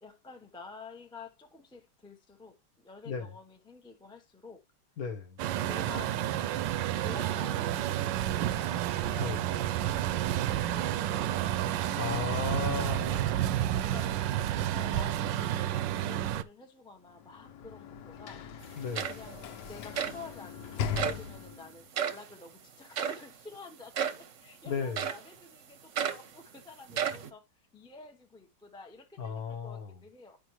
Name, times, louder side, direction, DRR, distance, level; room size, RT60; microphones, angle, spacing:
voice 1, 0.0-4.6 5.6-6.3 6.9-8.3 8.6-11.2 13.9-18.4 19.0-19.4 19.7-30.4, left 3 dB, 5° left, 0.5 m, -49 dB
voice 2, 5.0-5.4 9.2-9.4 12.0-13.4 18.8-19.1 24.6-25.0 29.2-29.9, left 5 dB, 55° left, 1.4 m, -35 dB
Truck, 5.4-16.4, right 12 dB, 80° right, 1.3 m, -30 dB
Sliding door / Slam, 17.1-21.8, left 7 dB, 70° left, 1.3 m, -39 dB
sound 1, 18.6-18.7 18.9-19.4 20.0-20.2 21.0-21.3 21.9-22.2 23.0-23.3 23.9-24.3 25.0-25.3 26.0-26.3 26.9-27.3, right 8 dB, 55° right, 0.9 m, -32 dB
10.0 x 5.2 x 3.1 m
omnidirectional pair, 2.0 m